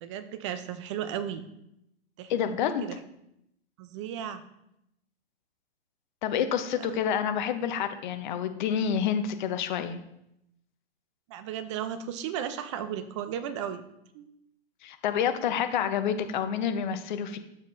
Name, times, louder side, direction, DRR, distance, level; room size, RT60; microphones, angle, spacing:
voice 1, 0.0-1.5 2.2-2.3 2.6-3.0 3.8-4.4 6.7-7.0 11.3-13.8 14.1-14.3, right 9 dB, 30° right, 10 dB, 0.5 m, -35 dB
voice 2, 2.3-2.9 6.2-10.0 14.8-17.4, left 8 dB, 50° left, 9 dB, 0.8 m, -28 dB
7.3 x 7.2 x 2.6 m, 0.81 s
hypercardioid pair, 140°, 31 cm